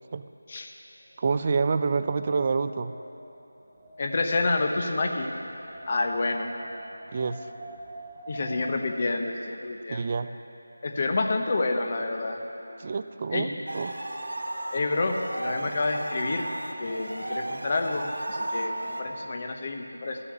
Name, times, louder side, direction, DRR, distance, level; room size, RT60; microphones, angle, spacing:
Wind, 1.1-9.1, right 1 dB, 10° right, 1.6 m, -45 dB
voice 1, 1.2-2.9 7.1-7.4 9.9-10.3 12.8-13.9, right 4 dB, 30° right, 11 dB, 0.4 m, -27 dB
voice 2, 4.0-5.3 5.9-6.5 8.3-10.0 10.8-12.4 13.3-13.5 14.7-16.5 16.8-20.2, left 3 dB, 35° left, 3 dB, 1.0 m, -28 dB
sound 1, 13.7-19.0, right 1 dB, 80° right, 1.5 m, -34 dB
12.5 x 6.9 x 10.0 m, 2.9 s
figure-of-eight pair, 170°, 0 cm